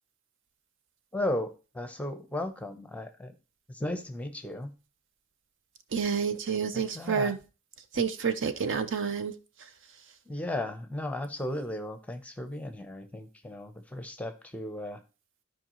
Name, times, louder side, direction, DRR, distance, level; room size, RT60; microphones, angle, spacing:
voice 1, 1.1-3.3 3.7-4.7 6.9-7.3 10.3-15.0, left 1 dB, 5° left, 7 dB, 0.8 m, -35 dB
voice 2, 5.9-7.4 7.9-9.3, right 6 dB, 60° right, 10 dB, 0.7 m, -29 dB
13.0 x 4.7 x 3.0 m, 0.32 s
head